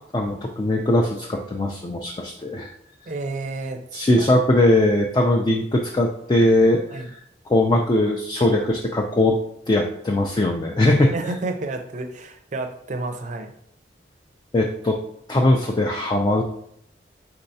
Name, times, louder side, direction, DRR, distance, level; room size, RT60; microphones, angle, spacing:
voice 1, 0.1-2.7 3.9-7.0 7.5-9.4 9.7-11.1 14.5-15.0 15.3-16.4, left 1 dB, 25° left, 1 dB, 0.3 m, -20 dB
voice 2, 3.1-3.8 4.2-4.3 6.9-7.1 11.1-13.5, right 2 dB, 40° right, 6 dB, 0.5 m, -30 dB
4.4 x 3.8 x 2.7 m, 0.71 s
head